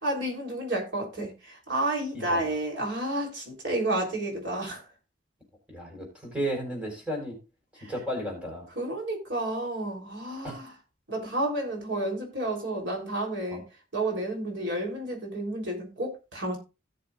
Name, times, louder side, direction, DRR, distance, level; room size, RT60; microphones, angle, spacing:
voice 1, 0.0-4.8 7.8-7.9 8.8-10.7 11.1-13.7 13.9-16.6, right 1 dB, 75° right, 0 dB, 3.6 m, -31 dB
voice 2, 5.7-7.4 7.9-8.7 10.4-10.6 13.5-13.6, equal, 5° right, 0 dB, 4.4 m, -33 dB
17.0 x 6.8 x 2.5 m, 0.29 s
head